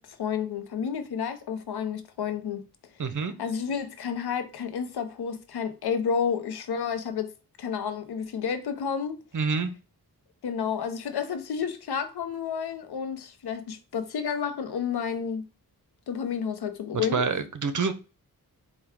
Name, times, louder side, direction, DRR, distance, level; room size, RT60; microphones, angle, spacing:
voice 1, 0.0-2.6 3.4-7.3 7.6-9.2 10.4-15.4 16.1-17.3, left 7 dB, 80° left, 0.7 m, -30 dB
voice 2, 3.0-3.3 9.3-9.7 17.1-17.9, right 5 dB, 50° right, 0.7 m, -27 dB
4.4 x 2.3 x 3.5 m
cardioid pair, 60°, 38 cm